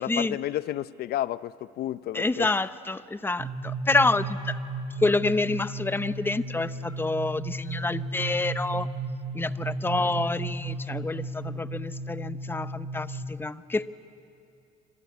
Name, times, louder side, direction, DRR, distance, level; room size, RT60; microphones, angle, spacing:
voice 1, 0.0-2.5 10.0-10.1, left 13 dB, 70° left, 17 dB, 0.7 m, -31 dB
voice 2, 2.1-4.6 5.0-8.9 9.3-13.9, left 3 dB, 15° left, 14 dB, 0.7 m, -28 dB
sound 1, 3.4-13.2, right 3 dB, 45° right, 5.8 m, -34 dB
28.0 x 25.0 x 8.5 m, 2.6 s
cardioid pair, 110°, 17 cm